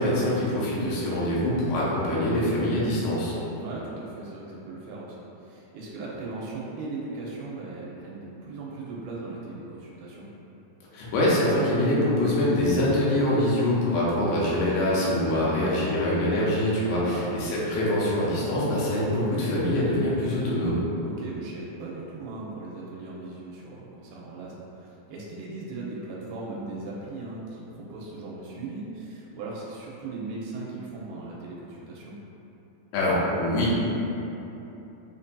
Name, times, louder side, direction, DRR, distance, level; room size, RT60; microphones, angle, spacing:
voice 1, 0.0-3.3 10.9-20.8 32.9-33.8, left 1 dB, 90° left, -6 dB, 2.7 m, -24 dB
voice 2, 3.5-10.3 17.1-17.3 21.0-32.2, right 3 dB, 85° right, -5 dB, 2.6 m, -38 dB
7.8 x 2.6 x 2.2 m, 3.0 s
omnidirectional pair, 4.2 m